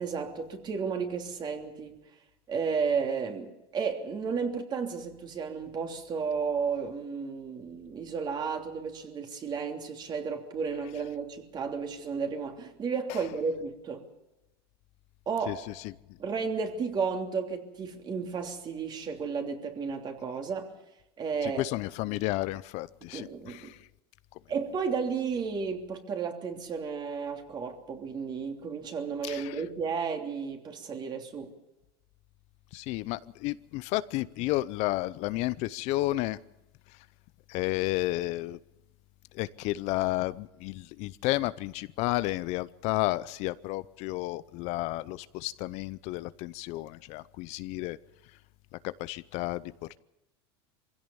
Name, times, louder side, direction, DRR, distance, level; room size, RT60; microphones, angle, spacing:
voice 1, 0.0-2.0 2.5-14.0 15.3-15.7 16.2-20.7 21.2-21.6 23.1-23.7 24.5-31.5, right 5 dB, 35° right, 3.2 m, -33 dB
voice 2, 21.4-23.7 29.2-29.5 32.7-36.4 37.5-38.6 39.3-48.0 48.8-49.6, left 18 dB, 55° left, 0.7 m, -32 dB
23.5 x 16.5 x 7.1 m
supercardioid pair, 115°, 13 cm